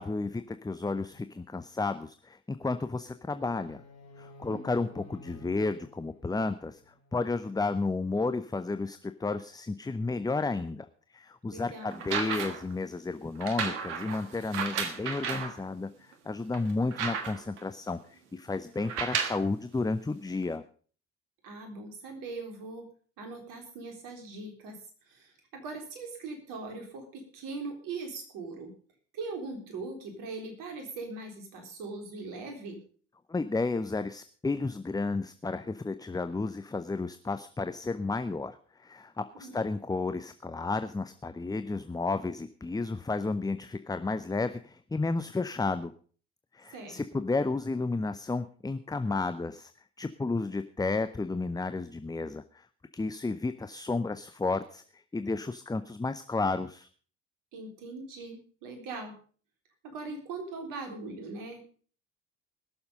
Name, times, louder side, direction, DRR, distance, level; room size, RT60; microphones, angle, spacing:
voice 1, 0.0-3.8 4.2-10.9 11.1-20.6 33.3-45.9 46.5-49.7 50.0-52.7 52.9-56.9, left 3 dB, 10° left, 11 dB, 0.7 m, -32 dB
sound 1, 3.2-7.3, left 2 dB, 50° left, 4.4 m, -53 dB
voice 2, 11.5-12.0 21.4-22.8 23.2-24.8 25.0-28.7 29.1-32.8 39.4-39.7 46.7-47.0 57.5-59.2 59.8-61.6, right 3 dB, 65° right, 4 dB, 3.8 m, -40 dB
sound 2, 11.9-12.7 13.4-15.6 16.1-16.2 16.5-17.6 18.8-19.5 20.4-20.5, right 6 dB, 85° right, 1.6 m, -33 dB
21.0 x 7.1 x 5.2 m, 0.43 s
hypercardioid pair, 55°, 35 cm